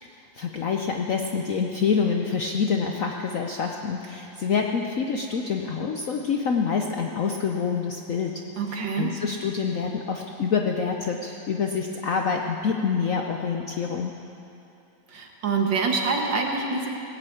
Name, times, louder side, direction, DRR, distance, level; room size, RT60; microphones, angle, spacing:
voice 1, 0.0-8.4 8.7-14.2, left 5 dB, 60° left, 2 dB, 0.9 m, -27 dB
voice 2, 8.6-9.1 15.1-16.9, right 4 dB, 65° right, 1 dB, 2.2 m, -26 dB
18.5 x 8.7 x 8.5 m, 2.8 s
omnidirectional pair, 2.1 m